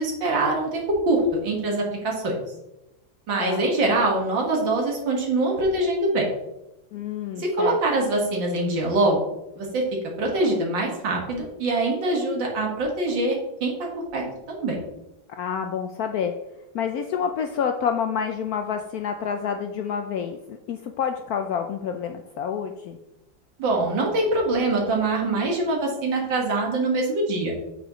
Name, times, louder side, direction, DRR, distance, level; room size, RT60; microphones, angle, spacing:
voice 1, 0.0-2.4 3.3-6.3 7.4-9.2 9.6-9.8 10.2-14.8 23.6-27.5, right 2 dB, 75° right, 0 dB, 2.4 m, -24 dB
voice 2, 6.9-7.8 15.3-16.4 16.7-23.0, left 7 dB, 75° left, 6 dB, 0.9 m, -28 dB
8.5 x 6.7 x 3.0 m, 0.92 s
omnidirectional pair, 2.1 m